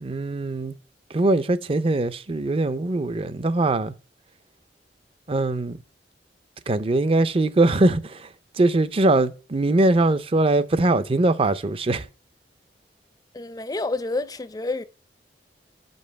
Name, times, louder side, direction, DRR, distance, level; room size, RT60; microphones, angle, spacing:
voice 1, 0.0-0.7 1.1-3.9 5.3-5.8 6.7-8.2 8.6-12.1, right 2 dB, 30° right, 0.5 m, -21 dB
voice 2, 13.3-14.8, left 2 dB, 20° left, 0.5 m, -28 dB
6.0 x 5.4 x 6.7 m
head